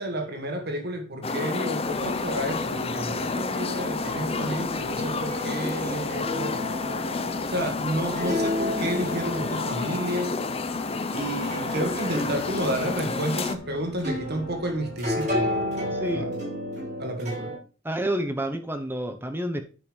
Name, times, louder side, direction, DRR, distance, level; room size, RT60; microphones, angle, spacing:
voice 1, 0.0-6.7 7.5-10.4 11.1-16.3 17.0-17.5, right 1 dB, 55° right, 1.6 m, -31 dB
sound 1, 1.2-13.6, left 3 dB, 30° left, 0.7 m, -30 dB
sound 2, 1.8-16.2, left 2 dB, 65° left, 1.6 m, -45 dB
sound 3, 3.8-17.6, left 1 dB, 35° right, 4.8 m, -33 dB
voice 2, 15.9-16.3 17.8-19.6, right 1 dB, 10° right, 0.8 m, -29 dB
10.0 x 5.1 x 5.2 m
head